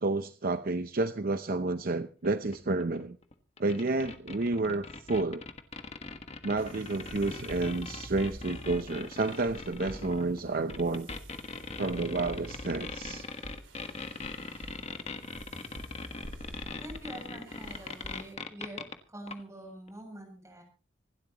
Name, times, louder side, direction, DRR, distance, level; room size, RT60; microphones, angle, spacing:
voice 1, 0.0-3.2 3.6-5.4 6.4-11.1 11.8-13.3, right 3 dB, 50° right, 10 dB, 0.7 m, -30 dB
sound 1, 2.2-19.0 19.3-19.4 19.9-20.0, left 3 dB, 35° left, 1.4 m, -41 dB
sound 2, 6.6-18.3, right 1 dB, 80° right, 3.1 m, -47 dB
voice 2, 16.8-20.6, right 1 dB, 15° right, 2 dB, 7.4 m, -45 dB
26.0 x 12.0 x 3.0 m, 0.36 s
head